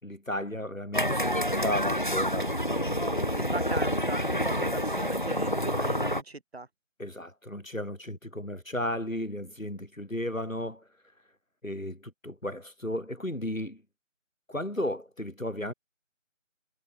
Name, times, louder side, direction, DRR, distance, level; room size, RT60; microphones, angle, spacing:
voice 1, 0.0-2.5 7.0-10.8 11.6-13.8 14.5-15.7, left 1 dB, 90° left, 6.1 m, -34 dB
sound 1, 0.9-6.2, equal, 40° left, 0.5 m, -28 dB
voice 2, 3.1-6.7, right 3 dB, 50° right, 1.9 m, -39 dB
figure-of-eight pair, 165°, 39 cm